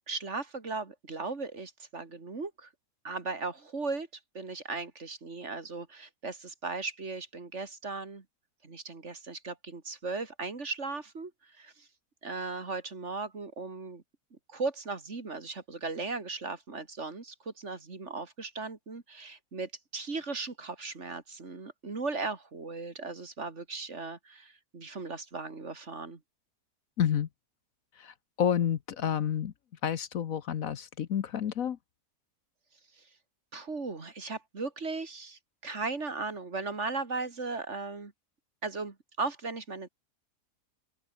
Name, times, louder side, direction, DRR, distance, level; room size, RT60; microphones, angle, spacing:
voice 1, 0.1-2.7 3.0-4.1 4.3-8.2 8.6-11.3 11.6-11.9 12.2-14.0 14.5-26.2 33.5-38.1 38.6-39.9, right 3 dB, 45° right, 2.7 m, -37 dB
voice 2, 27.0-27.3 28.0-29.5 29.8-31.8, left 9 dB, 65° left, 1.3 m, -29 dB
open air
omnidirectional pair, 1.7 m